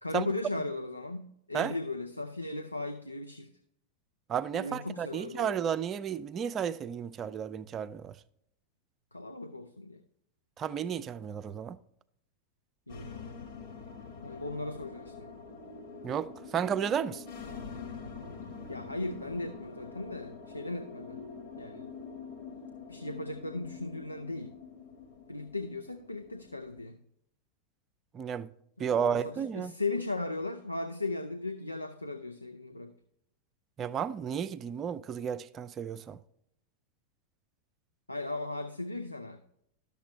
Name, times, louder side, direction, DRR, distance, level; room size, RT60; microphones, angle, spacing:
voice 1, 0.0-3.5 4.5-5.6 9.1-10.0 12.9-13.4 14.2-15.3 18.7-21.2 21.6-21.9 22.9-24.5 25.3-27.0 28.8-32.9 38.1-39.4, left 2 dB, 85° left, 0.5 m, -37 dB
voice 2, 4.3-8.1 10.6-11.8 16.0-17.2 28.1-28.5 28.8-29.7 33.8-36.2, right 8 dB, 30° right, 0.4 m, -32 dB
sound 1, 12.9-26.8, left 5 dB, 50° left, 1.4 m, -45 dB
12.0 x 6.8 x 3.1 m
figure-of-eight pair, 90°, 0 cm